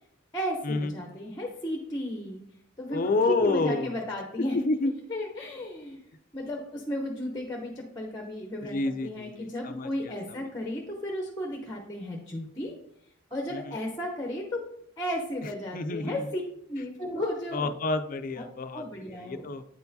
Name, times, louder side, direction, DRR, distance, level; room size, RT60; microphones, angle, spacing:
voice 1, 0.3-2.4 2.8-4.6 5.1-6.0 6.3-12.8 13.3-14.7 15.0-16.4 16.7-17.7 18.4-18.5 18.7-19.5, left 1 dB, 15° left, 1 dB, 0.7 m, -34 dB
voice 2, 2.9-4.0 4.5-4.9 8.6-10.4 13.5-13.8 15.7-16.3 17.5-19.6, left 3 dB, 40° left, 9 dB, 0.4 m, -29 dB
8.5 x 4.6 x 2.7 m, 0.71 s
head